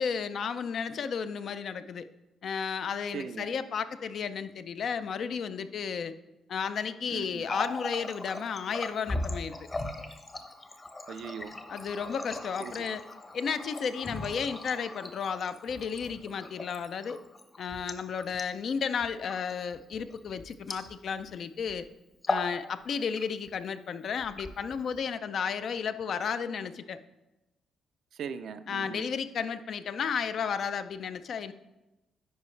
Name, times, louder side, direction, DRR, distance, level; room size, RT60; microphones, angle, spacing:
voice 1, 0.0-2.1 2.4-6.1 6.5-9.6 11.7-13.0 13.3-17.2 17.6-21.9 22.3-27.0 28.7-31.5, left 6 dB, 60° left, 11 dB, 0.4 m, -33 dB
voice 2, 3.1-3.5 7.1-7.5 11.1-11.5 12.6-12.9 28.1-29.1, right 7 dB, 70° right, 10 dB, 0.4 m, -40 dB
Water tap faucet, 7.3-21.3 21.6-21.8 22.1-22.6 22.9-23.6 24.2-25.0, left 2 dB, 30° left, 0.9 m, -38 dB
10.0 x 4.7 x 3.2 m, 1.0 s
cardioid pair, 90°, 0 cm